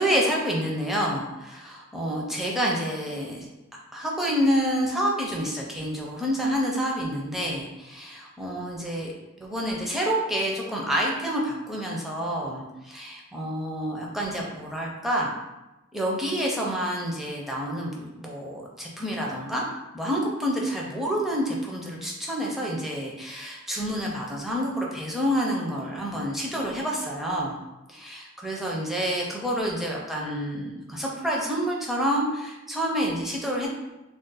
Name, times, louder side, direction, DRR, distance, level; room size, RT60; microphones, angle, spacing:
voice 1, 0.0-3.5 3.9-9.1 9.4-15.3 15.9-19.6 19.9-27.6 27.9-33.7, equal, ahead, -3 dB, 0.4 m, -28 dB
2.4 x 2.1 x 3.9 m, 1.0 s
head